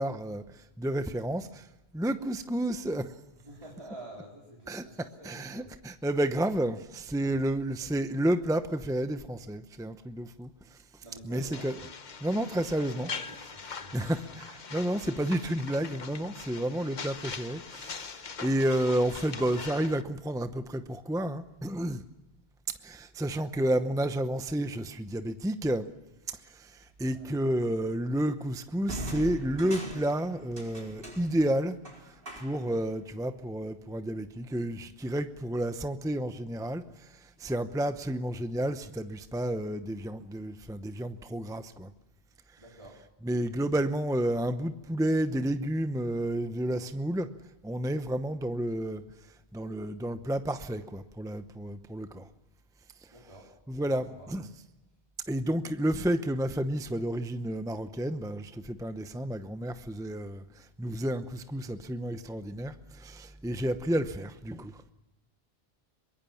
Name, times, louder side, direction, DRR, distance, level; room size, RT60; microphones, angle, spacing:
voice 1, 0.0-1.7 1.9-3.1 4.7-4.8 5.2-11.7 12.2-13.1 13.9-22.0 22.8-25.9 26.3-31.8 32.0-41.9 43.2-47.3 47.6-49.0 49.5-52.3 53.7-54.4 55.3-64.9, right 1 dB, 5° right, 0.8 m, -31 dB
voice 2, 3.4-5.7 7.2-7.5 11.0-11.7 13.0-14.1 14.7-15.0 27.1-27.3 42.6-43.0 53.1-53.5 53.7-54.3, right 1 dB, 30° right, 4.0 m, -49 dB
sound 1, 11.5-20.0, left 5 dB, 50° left, 1.0 m, -42 dB
sound 2, 26.8-27.1 28.9-32.8, right 1 dB, 65° right, 4.8 m, -42 dB
23.5 x 21.5 x 7.2 m
omnidirectional pair, 1.1 m